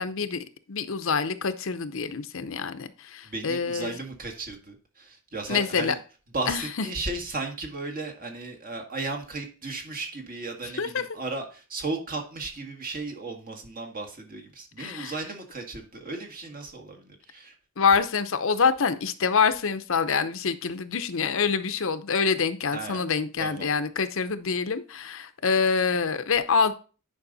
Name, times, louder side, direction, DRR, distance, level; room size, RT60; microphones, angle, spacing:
voice 1, 0.0-3.9 5.5-5.9 6.5-6.6 10.8-11.0 14.8-15.1 17.8-26.7, left 5 dB, 65° left, 0.7 m, -26 dB
voice 2, 3.2-6.0 6.3-17.5 22.7-23.0 23.4-23.7, right 3 dB, 45° right, 1.8 m, -35 dB
9.8 x 5.3 x 4.0 m
head